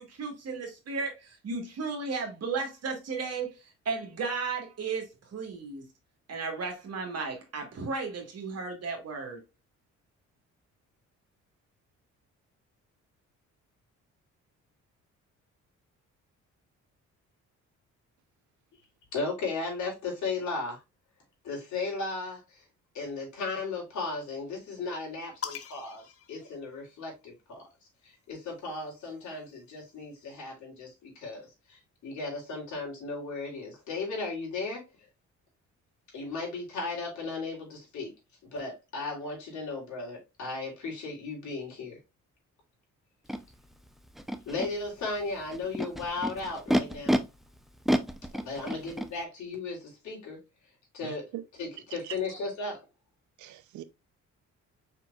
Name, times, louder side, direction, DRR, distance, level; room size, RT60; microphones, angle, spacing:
voice 1, 0.0-3.5 3.8-5.8 6.3-9.4, right 4 dB, 55° right, 1.5 m, -34 dB
voice 2, 19.1-20.8 21.4-22.6 22.9-27.6 28.0-34.8 36.1-38.1 38.5-42.0 44.4-47.2 48.3-50.4 50.9-51.3 51.6-52.8, left 3 dB, 70° left, 3.0 m, -36 dB
sound 1, 25.4-27.2 28.3-30.0, left 7 dB, 50° left, 0.7 m, -44 dB
Animal, 43.3-43.4 44.2-44.7 45.5-47.2 47.8-49.1, equal, ahead, 0.5 m, -28 dB
voice 3, 51.0-51.4 52.0-52.2 53.4-53.8, right 14 dB, 75° right, 0.7 m, -42 dB
4.9 x 4.5 x 2.3 m
cardioid pair, 90°, 30 cm